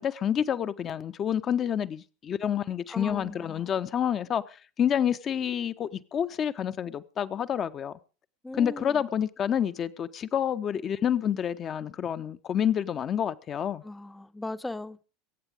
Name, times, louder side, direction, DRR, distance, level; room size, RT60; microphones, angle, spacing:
voice 1, 0.0-7.9 8.6-13.8, left 9 dB, 35° left, 1.1 m, -28 dB
voice 2, 2.9-3.7 8.4-9.0 13.8-15.1, left 2 dB, 10° left, 0.7 m, -38 dB
22.5 x 9.1 x 5.1 m
figure-of-eight pair, 80°, 0 cm